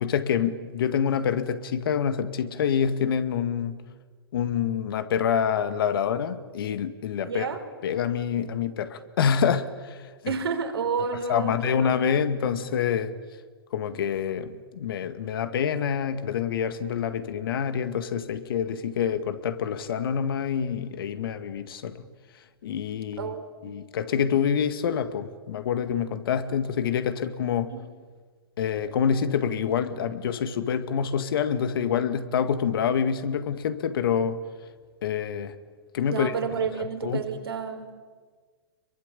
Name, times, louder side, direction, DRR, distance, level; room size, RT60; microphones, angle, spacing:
voice 1, 0.0-3.8 4.3-7.5 7.8-10.3 11.3-13.2 13.7-22.1 22.6-23.3 23.6-27.7 28.6-34.4 35.0-35.5 35.9-36.3 36.8-37.2, left 7 dB, 65° left, 2.0 m, -26 dB
voice 2, 7.2-7.6 10.3-11.9 23.2-23.8 27.7-27.8 36.1-37.9, right 6 dB, 75° right, 4.1 m, -30 dB
26.0 x 23.0 x 8.5 m
hypercardioid pair, 120°, 13 cm